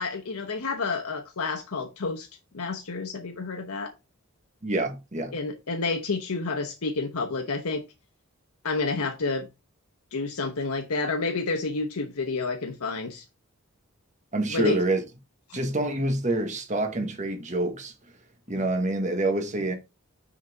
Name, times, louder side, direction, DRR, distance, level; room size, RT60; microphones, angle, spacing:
voice 1, 0.0-2.3 2.5-3.9 5.3-7.8 8.6-9.5 10.1-13.2 14.5-14.8 15.5-15.6, left 3 dB, 85° left, 0.9 m, -29 dB
voice 2, 4.6-5.3 14.3-15.1 15.5-17.9 18.5-19.7, right 1 dB, 35° right, 1.4 m, -27 dB
6.2 x 5.8 x 3.6 m
head